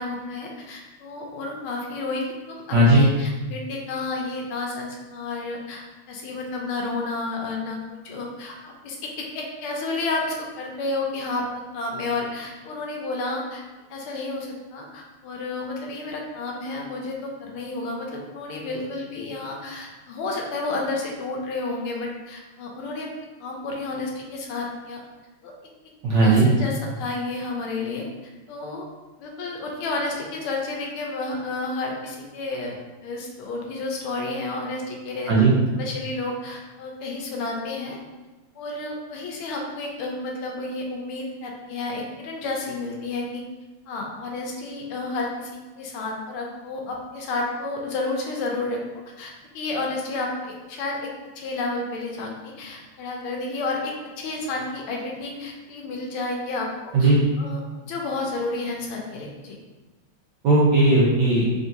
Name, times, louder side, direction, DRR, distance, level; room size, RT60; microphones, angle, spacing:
voice 1, 0.0-5.8 6.1-11.4 11.7-13.6 13.9-23.1 23.4-25.0 25.4-25.5 26.2-28.0 28.5-28.9 29.2-35.3 35.8-38.0 38.5-43.4 43.9-45.5 45.8-48.8 49.1-51.1 51.4-57.1 57.4-59.6, left 3 dB, 85° left, 0 dB, 1.6 m, -31 dB
voice 2, 2.7-3.1 26.0-26.5 35.3-35.5 56.9-57.2 60.4-61.5, right 2 dB, 65° right, -6 dB, 1.4 m, -16 dB
3.8 x 3.6 x 2.7 m, 1.2 s
omnidirectional pair, 2.3 m